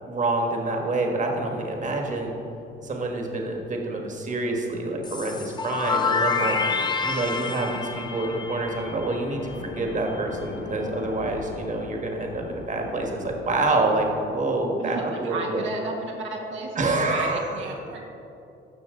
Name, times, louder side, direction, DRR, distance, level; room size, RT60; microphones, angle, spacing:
voice 1, 0.0-2.3 2.8-6.6 7.0-9.4 9.8-15.7 16.8-17.6, right 2 dB, 40° right, 1 dB, 1.5 m, -27 dB
sound 1, 1.2-14.3, left 4 dB, 65° left, 0.8 m, -43 dB
sound 2, 5.0-9.8, left 5 dB, 20° left, 0.7 m, -28 dB
voice 2, 6.4-6.9 14.8-18.1, right 3 dB, 75° right, -1 dB, 1.2 m, -34 dB
14.0 x 5.9 x 3.8 m, 2.8 s
cardioid pair, 90°, 20 cm